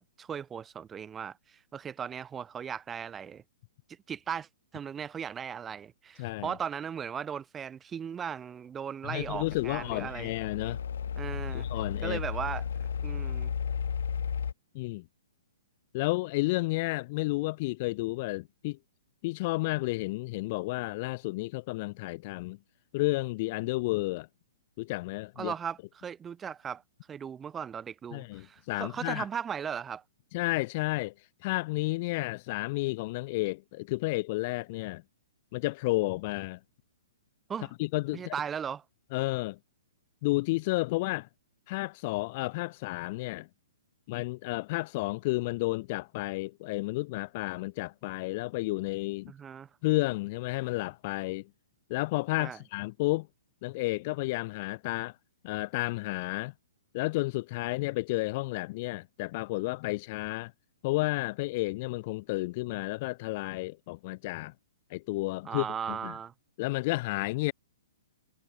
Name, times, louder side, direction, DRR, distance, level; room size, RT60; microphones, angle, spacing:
voice 1, 0.0-3.4 4.1-4.5 4.7-10.3 11.2-11.7 12.0-12.7 13.0-13.5 25.4-26.8 27.1-30.0 37.5-37.7 38.1-38.8 49.3-49.7 52.4-52.6 65.5-66.3, right 7 dB, 15° right, 2.2 m, -37 dB
voice 2, 6.2-6.5 9.0-10.8 11.5-12.2 14.7-15.0 15.9-18.8 19.2-22.6 22.9-24.3 24.8-25.5 28.1-29.3 30.3-35.0 35.5-36.6 37.8-38.3 39.1-39.6 40.2-41.3 41.7-43.5 44.1-49.3 49.8-51.5 51.9-53.3 53.6-55.2 55.4-56.5 56.9-60.5 60.8-64.5 64.9-66.1 66.6-67.5, left 22 dB, 40° left, 0.3 m, -31 dB
sound 1, 9.2-14.5, left 7 dB, 65° left, 1.0 m, -34 dB
figure-of-eight pair, 120°, 0 cm